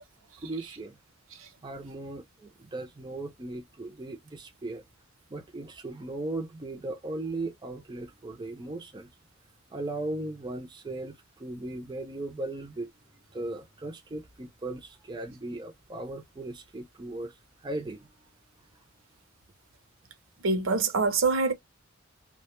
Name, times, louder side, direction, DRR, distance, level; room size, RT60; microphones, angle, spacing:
voice 1, 0.4-1.0 1.6-4.8 5.3-9.1 9.7-12.9 13.3-17.3 17.6-18.1, right 2 dB, 20° right, 0.4 m, -37 dB
voice 2, 20.4-21.5, right 4 dB, 70° right, 0.6 m, -24 dB
2.1 x 2.1 x 2.9 m
head